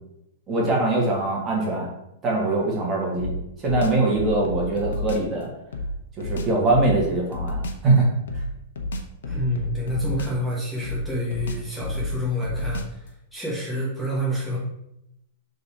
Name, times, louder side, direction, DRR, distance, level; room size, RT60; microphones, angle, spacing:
voice 1, 0.5-1.9 2.2-3.3 3.6-5.5 6.2-8.1, right 2 dB, 20° right, -3 dB, 1.6 m, -22 dB
sound 1, 3.2-5.3 5.7-7.9 8.3-10.5 10.8-13.1, left 1 dB, 90° left, 1.0 m, -31 dB
voice 2, 9.2-13.1 13.3-14.6, equal, 5° left, -6 dB, 1.4 m, -28 dB
6.6 x 3.9 x 4.2 m, 0.81 s
supercardioid pair, 160°, 0 cm